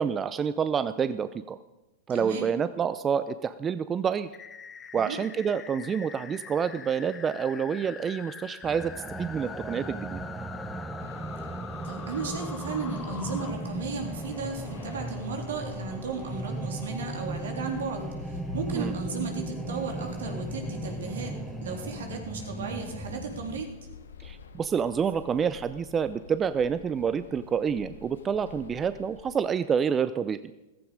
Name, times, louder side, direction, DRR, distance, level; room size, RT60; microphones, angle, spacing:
voice 1, 0.0-1.6 2.1-4.3 4.9-8.9 9.2-10.2 18.7-18.9 24.2-30.4, right 7 dB, 25° right, 13 dB, 0.5 m, -28 dB
voice 2, 2.1-2.5 4.9-5.2 11.8-21.3 21.6-23.7, right 4 dB, 75° right, 2 dB, 3.4 m, -35 dB
sound 1, 4.3-13.5, left 7 dB, 25° left, 1.1 m, -44 dB
sound 2, 8.6-23.6, right 2 dB, 5° right, 1.1 m, -37 dB
sound 3, 11.0-29.3, left 6 dB, 80° left, 1.3 m, -46 dB
15.0 x 15.0 x 5.1 m, 1.0 s
hypercardioid pair, 105°, 0 cm